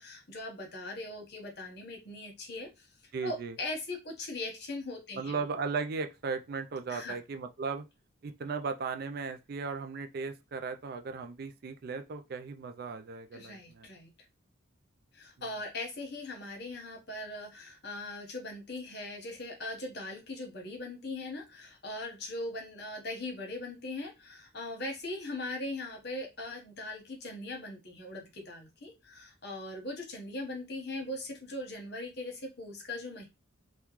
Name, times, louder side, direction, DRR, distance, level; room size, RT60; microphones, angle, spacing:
voice 1, 0.0-2.9 3.2-5.4 6.9-7.2 13.3-14.1 15.1-33.3, left 2 dB, 55° left, 1.1 m, -40 dB
voice 2, 3.1-3.6 5.1-7.8 8.2-13.9, right 4 dB, 50° right, 0.3 m, -36 dB
3.6 x 2.2 x 3.0 m
head